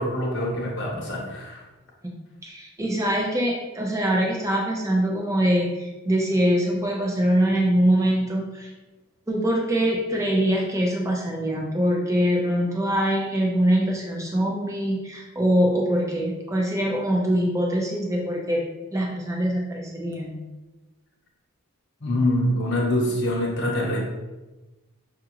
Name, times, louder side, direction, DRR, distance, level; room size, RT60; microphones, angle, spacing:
voice 1, 0.0-1.6 22.0-24.0, left 1 dB, 50° left, -2 dB, 1.0 m, -25 dB
voice 2, 2.4-8.7 9.3-18.6 18.9-20.3, equal, 15° right, -1 dB, 0.6 m, -23 dB
5.8 x 2.4 x 3.0 m, 1.1 s
head